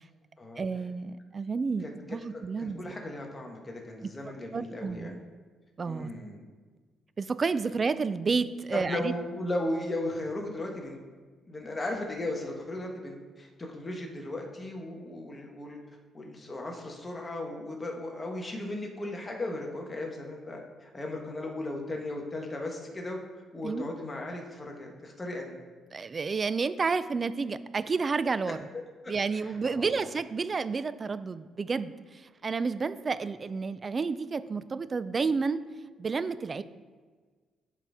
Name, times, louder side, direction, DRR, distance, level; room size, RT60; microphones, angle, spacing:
voice 1, 0.6-2.9 4.0-4.1 4.5-5.2 5.8-6.1 7.2-9.1 23.6-23.9 25.9-28.6 29.1-35.6 36.0-36.6, right 4 dB, 35° right, 14 dB, 0.3 m, -30 dB
voice 2, 2.3-5.2 5.8-6.4 8.7-11.0 11.4-15.8 16.1-23.2 23.5-25.5 28.7-30.0, left 1 dB, 25° left, 0 dB, 1.4 m, -36 dB
11.5 x 4.1 x 3.6 m, 1.5 s
cardioid pair, 90°, 0 cm